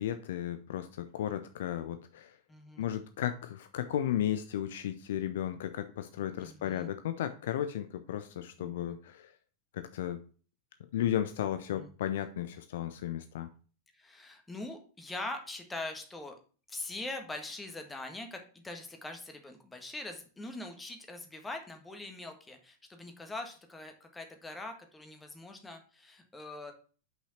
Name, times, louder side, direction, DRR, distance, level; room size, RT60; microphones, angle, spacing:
voice 1, 0.0-2.4 2.8-9.3 9.7-10.2 10.9-13.5, left 11 dB, 55° left, 9 dB, 0.5 m, -34 dB
voice 2, 2.5-2.8 6.4-6.9 8.6-9.0 11.7-11.9 13.9-16.3 16.7-26.7, left 2 dB, 10° left, 4 dB, 1.5 m, -43 dB
5.8 x 5.7 x 5.6 m, 0.39 s
figure-of-eight pair, 90°, 0 cm